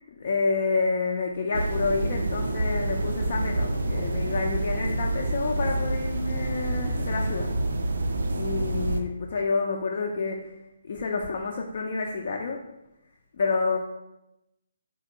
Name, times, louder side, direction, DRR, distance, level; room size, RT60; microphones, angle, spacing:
voice 1, 0.2-7.5 8.3-12.6 13.4-13.8, left 4 dB, 50° left, 1 dB, 0.3 m, -29 dB
sound 1, 1.5-9.0, right 2 dB, 65° right, 0.3 m, -28 dB
3.4 x 2.4 x 2.9 m, 0.92 s
figure-of-eight pair, 140°, 0 cm